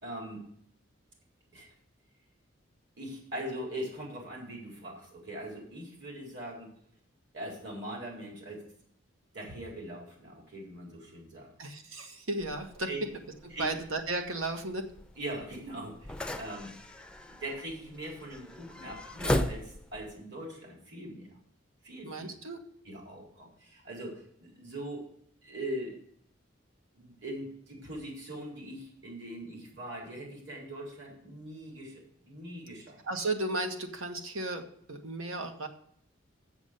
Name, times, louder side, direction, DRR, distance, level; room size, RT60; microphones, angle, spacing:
voice 1, 0.0-0.4 1.5-1.7 3.0-6.7 7.3-8.6 9.3-11.5 12.9-13.0 13.5-13.8 15.2-16.7 17.3-21.4 21.8-22.3 22.8-25.1 25.4-26.0 26.9-33.0, right 1 dB, 60° right, -1 dB, 4.2 m, -41 dB
voice 2, 11.6-12.9 13.4-14.9 22.0-22.6 33.0-35.7, right 2 dB, 85° right, 5 dB, 1.6 m, -34 dB
sound 1, 12.4-20.1, left 1 dB, 5° left, 0.5 m, -38 dB
7.3 x 7.2 x 8.0 m, 0.66 s
head